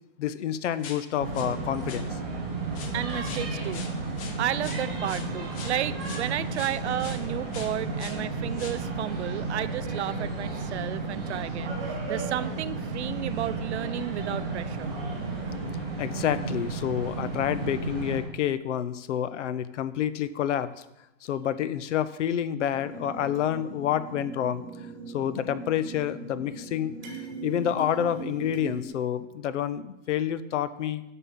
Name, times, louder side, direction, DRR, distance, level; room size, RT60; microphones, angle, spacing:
voice 1, 0.2-2.1 16.0-20.7 21.2-24.6 25.1-31.0, left 10 dB, 70° left, 14 dB, 0.8 m, -28 dB
sound 1, 0.8-1.5 1.8-2.1 2.7-7.3 7.5-8.2 8.6-8.9 9.2-9.4 9.7-9.8 10.6-10.7, left 6 dB, 30° left, 0.8 m, -43 dB
sound 2, 1.2-18.2, right 3 dB, 5° right, 0.3 m, -33 dB
voice 2, 2.9-3.8 4.4-14.9, right 12 dB, 65° right, 15 dB, 0.6 m, -32 dB
sound 3, 22.7-28.9, right 5 dB, 25° right, 1.2 m, -40 dB
8.2 x 5.5 x 7.2 m, 0.92 s
hypercardioid pair, 170°, 37 cm